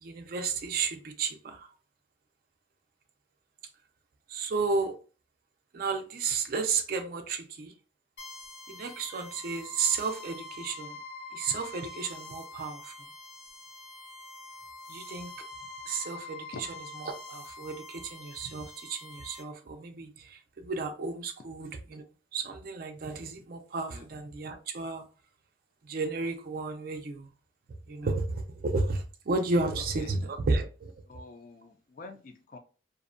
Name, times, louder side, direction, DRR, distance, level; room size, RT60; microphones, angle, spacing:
voice 1, 0.0-1.7 4.3-5.0 5.7-7.7 8.7-11.0 11.3-12.9 14.9-15.3 15.9-22.0 22.3-25.1 25.8-27.3 27.9-30.9, right 4 dB, 50° right, 0.4 m, -33 dB
sound 1, 8.2-19.4, left 3 dB, 80° left, 0.9 m, -45 dB
voice 2, 31.1-32.6, left 3 dB, 45° left, 0.4 m, -46 dB
2.6 x 2.1 x 2.5 m
head